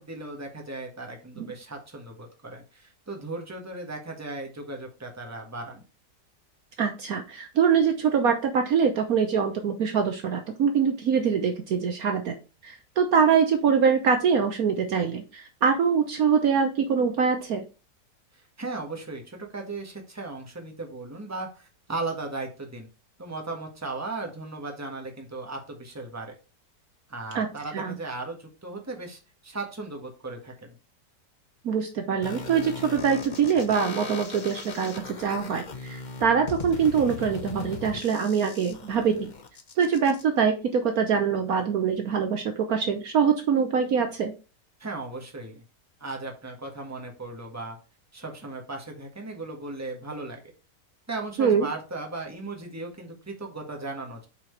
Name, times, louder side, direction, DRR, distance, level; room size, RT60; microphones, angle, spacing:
voice 1, 0.0-5.8 18.3-22.9 23.2-26.3 27.1-30.7 44.8-45.6 46.0-47.8 48.1-50.4 51.1-54.3, right 3 dB, 10° right, 1 dB, 1.5 m, -37 dB
voice 2, 6.8-12.3 12.6-17.6 27.3-27.5 27.7-28.0 31.6-39.3 39.8-44.3 51.4-51.7, right 6 dB, 60° right, 5 dB, 1.2 m, -24 dB
sound 1, 32.2-40.2, left 4 dB, 40° left, 0.7 m, -39 dB
8.6 x 4.6 x 3.2 m, 0.32 s
omnidirectional pair, 1.8 m